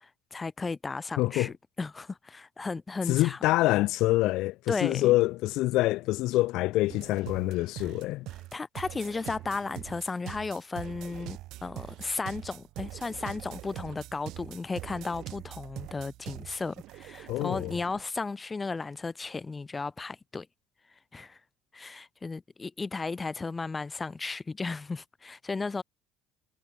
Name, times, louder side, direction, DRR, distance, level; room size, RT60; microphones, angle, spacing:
voice 1, 0.0-3.4 4.7-5.2 8.5-20.5 21.1-21.4 21.7-25.8, left 4 dB, 25° left, 1.8 m, -35 dB
voice 2, 1.2-1.5 3.1-8.3 17.3-17.7, left 18 dB, 70° left, 1.3 m, -26 dB
sound 1, 6.9-18.0, right 17 dB, 70° right, 1.2 m, -43 dB
supercardioid pair, 80°, 0 cm